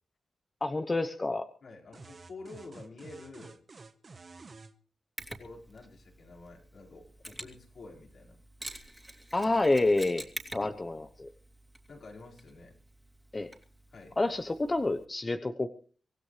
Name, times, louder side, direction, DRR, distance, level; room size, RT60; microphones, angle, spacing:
voice 1, 0.6-1.5 9.3-10.2 10.5-11.3 13.3-13.5 14.2-15.7, left 2 dB, 25° left, 8 dB, 0.9 m, -28 dB
voice 2, 1.6-3.6 5.3-8.4 11.9-12.8 13.9-14.2, left 3 dB, 65° left, -1 dB, 4.9 m, -49 dB
sound 1, 1.9-4.7, right 3 dB, 45° right, 1.2 m, -50 dB
Mechanisms, 5.2-15.0, right 1 dB, 10° right, 2.7 m, -48 dB
24.0 x 16.0 x 3.3 m, 0.41 s
cardioid pair, 80°, 0 cm